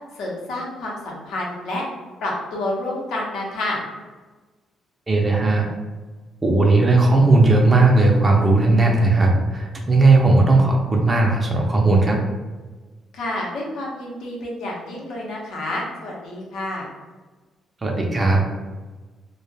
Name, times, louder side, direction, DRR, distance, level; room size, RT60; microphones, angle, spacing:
voice 1, 0.1-1.8 2.2-3.8 13.1-16.9, left 1 dB, 80° left, -3 dB, 0.7 m, -29 dB
voice 2, 5.1-5.7 6.4-12.2 17.8-18.4, right 2 dB, 25° right, 0 dB, 0.5 m, -16 dB
2.1 x 2.1 x 3.2 m, 1.3 s
cardioid pair, 90°, 0 cm